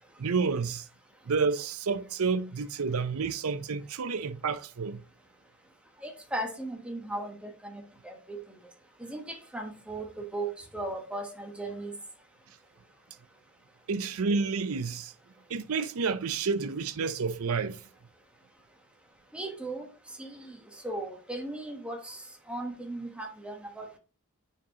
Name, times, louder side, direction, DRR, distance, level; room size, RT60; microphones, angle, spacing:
voice 1, 0.2-0.9 1.3-5.0 13.9-15.1 15.5-17.8, right 5 dB, 90° right, 0.6 m, -30 dB
voice 2, 6.0-8.4 9.0-11.9 19.3-19.9 20.2-22.2 22.5-24.0, right 2 dB, 5° right, 1.2 m, -37 dB
8.8 x 4.5 x 2.9 m
head